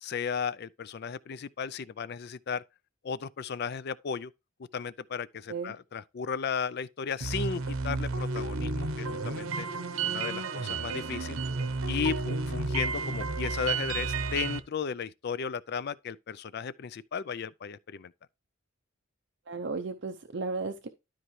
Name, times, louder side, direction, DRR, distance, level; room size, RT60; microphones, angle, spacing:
voice 1, 0.0-2.6 3.0-4.3 4.7-9.7 10.0-11.4 11.9-18.1, left 6 dB, 50° left, 0.4 m, -35 dB
sound 1, 7.2-14.6, right 3 dB, 85° right, 0.8 m, -32 dB
voice 2, 19.5-20.9, right 4 dB, 55° right, 0.6 m, -34 dB
12.5 x 4.5 x 3.2 m
head